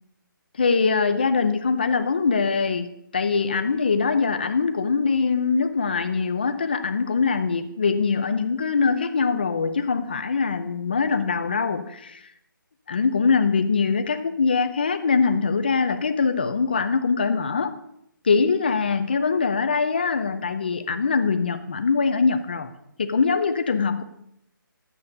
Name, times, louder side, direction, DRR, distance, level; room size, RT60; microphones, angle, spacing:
voice 1, 0.6-2.9 3.1-12.3 12.9-17.7 18.2-22.7 23.0-24.0, left 5 dB, 25° left, 0.6 m, -23 dB
12.0 x 8.5 x 5.3 m
hypercardioid pair, 180°, 12 cm